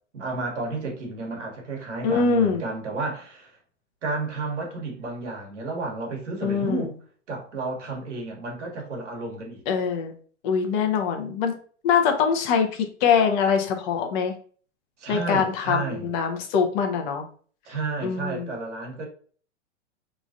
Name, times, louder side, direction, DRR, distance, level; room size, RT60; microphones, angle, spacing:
voice 1, 0.1-3.5 4.0-6.9 7.3-9.6 15.0-16.1 17.6-19.1, right 3 dB, 80° right, 1.2 m, -32 dB
voice 2, 2.0-2.6 6.4-6.9 9.7-10.1 10.4-11.5 11.8-14.3 15.1-17.3 18.0-18.5, left 6 dB, 45° left, 0.6 m, -23 dB
3.0 x 2.4 x 2.6 m
hypercardioid pair, 115°, 35 cm